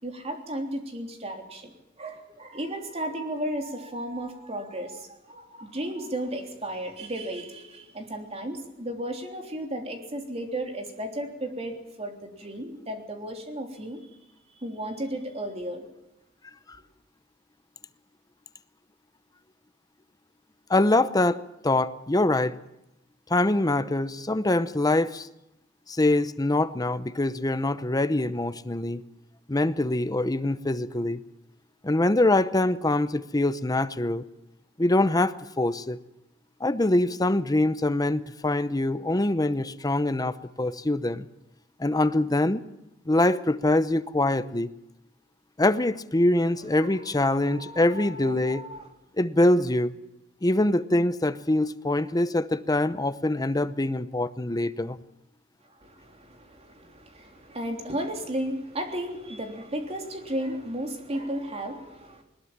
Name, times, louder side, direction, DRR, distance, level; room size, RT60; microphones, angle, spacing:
voice 1, 0.0-1.7 2.0-14.1 14.5-15.9 46.8-48.9 55.8-62.2, right 1 dB, 30° right, 3 dB, 3.4 m, -34 dB
voice 2, 20.7-22.6 23.3-25.3 25.9-29.0 29.5-31.2 31.8-34.2 34.8-36.0 36.6-41.3 41.8-42.6 43.1-44.7 45.6-48.7 49.2-50.0 50.4-55.0, left 2 dB, 20° left, 13 dB, 0.8 m, -24 dB
21.0 x 20.5 x 7.4 m, 0.89 s
head